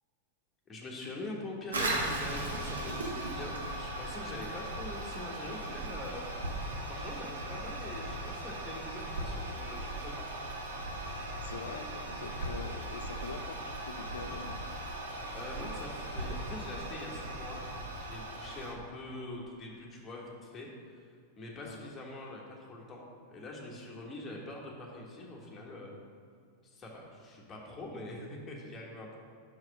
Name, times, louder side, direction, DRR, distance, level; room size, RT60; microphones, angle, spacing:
voice 1, 0.7-6.3 6.9-10.3 15.3-21.1 21.4-23.0 23.3-25.9 26.6-29.2, left 2 dB, 20° left, -2 dB, 1.3 m, -44 dB
Toilet flush, 1.7-18.7, right 1 dB, 70° right, 1.0 m, -38 dB
voice 2, 11.3-14.6 15.6-15.8 21.6-21.9, left 5 dB, 65° left, 8 dB, 0.5 m, -44 dB
5.3 x 4.8 x 6.3 m, 2.2 s
figure-of-eight pair, 90°, 0 cm